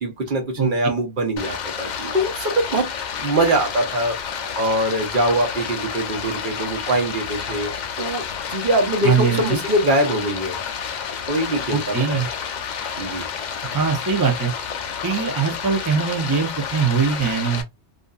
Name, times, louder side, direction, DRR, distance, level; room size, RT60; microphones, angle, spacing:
voice 1, 0.0-2.9 3.2-4.2 4.5-7.7 8.0-10.6 11.3-12.2 13.0-13.3, right 1 dB, 50° right, 0.9 m, -23 dB
Stream, 1.4-17.6, left 7 dB, 60° left, 0.5 m, -30 dB
voice 2, 9.0-9.6 11.7-12.3 13.6-14.5 15.0-17.6, right 6 dB, 25° right, 0.5 m, -21 dB
2.5 x 2.5 x 2.3 m
omnidirectional pair, 1.2 m